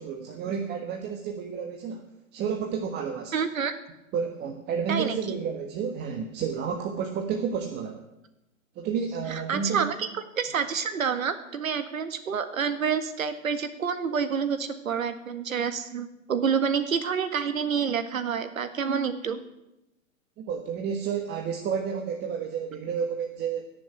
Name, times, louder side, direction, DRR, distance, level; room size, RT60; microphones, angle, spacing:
voice 1, 0.0-2.1 2.3-3.3 4.1-8.0 8.7-9.9 20.4-23.7, right 6 dB, 25° right, 4 dB, 1.5 m, -31 dB
voice 2, 3.3-3.7 4.9-5.2 9.3-19.4, right 6 dB, 85° right, 10 dB, 1.8 m, -28 dB
17.0 x 7.0 x 9.2 m, 0.91 s
hypercardioid pair, 130°, 40 cm